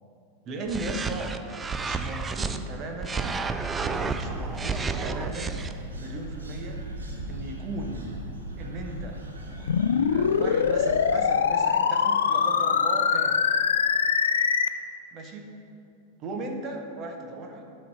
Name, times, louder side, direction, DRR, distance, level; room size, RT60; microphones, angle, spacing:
voice 1, 0.4-1.3 1.8-3.2 4.1-5.7 6.0-6.8 7.3-8.1 8.6-9.2 9.5-9.8 10.1-13.3 15.1-15.5 16.2-17.6, right 2 dB, 35° right, 3 dB, 1.0 m, -37 dB
sound 1, 0.7-2.6 3.0-5.7, right 4 dB, 15° right, 0.4 m, -31 dB
sound 2, 3.8-11.1, right 1 dB, 70° right, 1.0 m, -38 dB
sound 3, 9.7-14.7, left 6 dB, 65° left, 0.3 m, -23 dB
11.5 x 4.5 x 4.8 m, 2.5 s
figure-of-eight pair, 90°, 0 cm